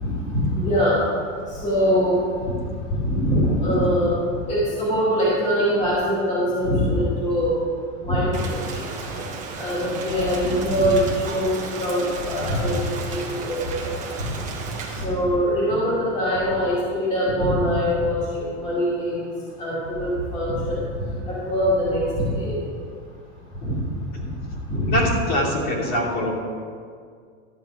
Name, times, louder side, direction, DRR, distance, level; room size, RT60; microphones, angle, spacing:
voice 1, 0.0-1.0 1.5-2.2 3.1-4.1 4.5-7.5 8.0-8.8 9.1-9.2 9.6-11.5 11.8-13.9 14.9-19.2 19.6-22.6 23.6-23.7 24.7-24.9, equal, 20° left, -8 dB, 2.5 m, -23 dB
Rain, 8.3-15.0, right 4 dB, 20° right, 1.4 m, -34 dB
voice 2, 24.9-26.3, left 1 dB, 35° left, -5 dB, 2.9 m, -23 dB
13.0 x 7.4 x 4.9 m, 2.1 s
supercardioid pair, 170°, 35 cm